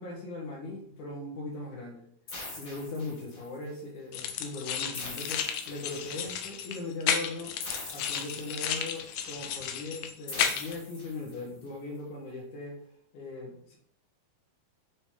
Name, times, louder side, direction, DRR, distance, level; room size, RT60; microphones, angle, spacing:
voice 1, 0.0-2.1 2.6-7.5 7.9-12.8 13.1-13.8, left 2 dB, 60° left, -1 dB, 2.5 m, -39 dB
sound 1, 2.3-3.6 4.9-6.3 7.6-9.0 10.3-11.6, left 2 dB, 45° left, 3.2 m, -43 dB
sound 2, 4.1-10.8, left 8 dB, 80° left, 1.8 m, -33 dB
8.6 x 4.0 x 3.7 m, 0.68 s
omnidirectional pair, 4.5 m